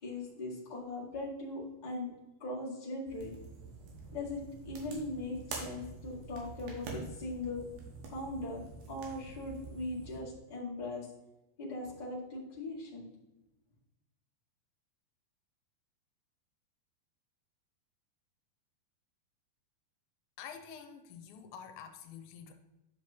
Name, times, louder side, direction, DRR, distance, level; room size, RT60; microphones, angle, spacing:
voice 1, 0.0-2.1 2.4-3.3 4.1-7.6 8.1-11.1 11.6-13.1, left 2 dB, 25° left, -6 dB, 0.9 m, -40 dB
sound 1, 3.1-10.2, right 4 dB, 65° right, 2.6 m, -46 dB
voice 2, 20.4-22.5, left 7 dB, 80° left, 7 dB, 2.5 m, -48 dB
10.0 x 6.1 x 2.9 m, 0.97 s
omnidirectional pair, 4.5 m